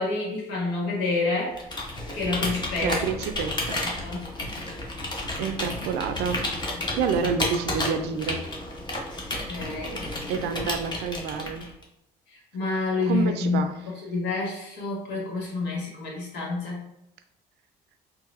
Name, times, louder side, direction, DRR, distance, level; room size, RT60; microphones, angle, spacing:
voice 1, 0.0-1.6 2.1-3.0 3.7-4.3 9.4-10.0 12.3-16.8, left 3 dB, 85° left, -3 dB, 1.3 m, -28 dB
Computer keyboard, 1.5-11.8, left 1 dB, 25° left, 0.8 m, -32 dB
voice 2, 2.8-3.8 5.4-6.4 7.0-8.4 10.3-11.7 13.1-13.8, right 6 dB, 80° right, 8 dB, 0.4 m, -28 dB
4.0 x 2.2 x 2.5 m, 0.84 s
cardioid pair, 110°, 17 cm